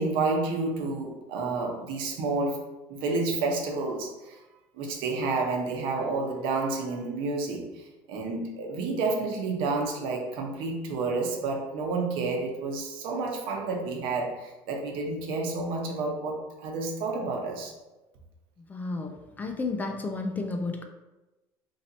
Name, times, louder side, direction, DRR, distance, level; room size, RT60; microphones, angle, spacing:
voice 1, 0.0-2.6 2.9-4.4 4.7-17.7, right 3 dB, 65° right, 1 dB, 0.9 m, -30 dB
voice 2, 18.7-20.8, left 3 dB, 20° left, 4 dB, 0.3 m, -32 dB
3.1 x 2.8 x 4.0 m, 1.1 s
cardioid pair, 135°, 9 cm